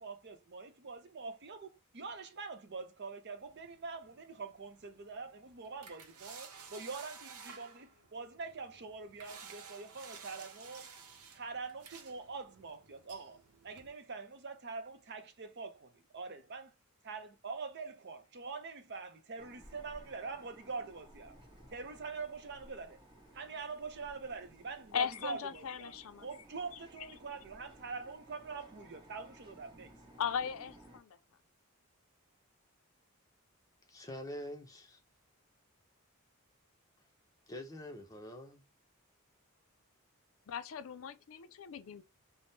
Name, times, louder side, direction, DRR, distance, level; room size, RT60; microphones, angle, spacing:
voice 1, 0.0-10.9 11.3-13.4 13.6-16.7 17.0-21.4 21.7-23.0 23.3-30.0, right 4 dB, 50° right, 0.6 m, -44 dB
sound 1, 3.4-13.9, right 6 dB, 90° right, 0.7 m, -54 dB
sound 2, 19.4-31.0, right 1 dB, 20° right, 1.2 m, -58 dB
voice 2, 24.9-26.3 30.2-31.2 40.5-42.0, left 7 dB, 70° left, 0.4 m, -38 dB
voice 3, 33.9-35.0 37.5-38.6, left 1 dB, 15° left, 0.6 m, -45 dB
3.5 x 2.1 x 2.6 m
head